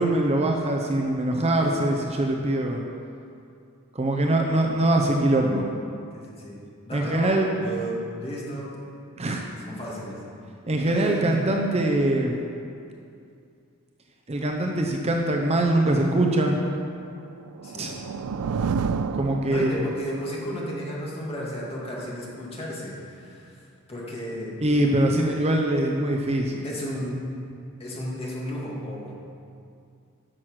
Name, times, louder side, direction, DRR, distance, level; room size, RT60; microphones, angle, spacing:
voice 1, 0.0-2.8 3.9-5.7 6.9-7.5 9.2-9.4 10.7-12.3 14.3-16.6 17.7-17.9 19.1-19.7 24.6-26.6, right 1 dB, 30° right, 1 dB, 0.7 m, -23 dB
voice 2, 6.1-6.6 6.8-8.7 9.7-10.2 10.8-11.4 17.6-18.0 19.4-23.6 23.9-24.6 26.6-27.1 27.8-29.1, equal, 25° left, -5 dB, 2.2 m, -33 dB
sound 1, 17.3-20.2, right 5 dB, 90° right, 0.4 m, -29 dB
10.0 x 6.4 x 6.2 m, 2.5 s
head